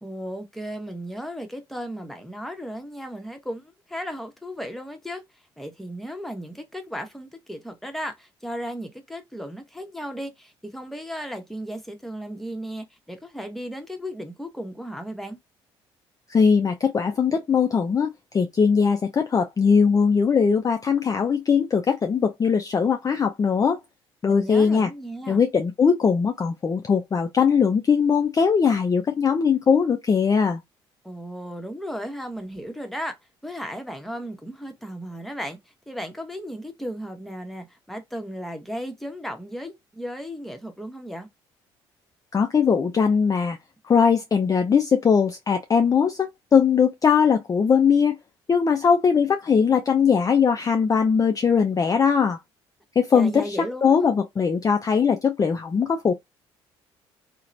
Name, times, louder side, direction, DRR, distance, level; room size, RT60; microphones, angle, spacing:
voice 1, 0.0-5.2 5.6-15.4 24.3-25.4 31.0-33.2 33.4-35.6 35.9-41.3 53.1-54.1, equal, ahead, 0.9 m, -35 dB
voice 2, 16.3-23.8 24.2-24.9 25.3-30.6 42.3-43.6 43.9-48.2 48.5-52.4 53.0-56.1, left 6 dB, 25° left, 0.4 m, -20 dB
2.9 x 2.1 x 2.5 m
hypercardioid pair, 50°, 13 cm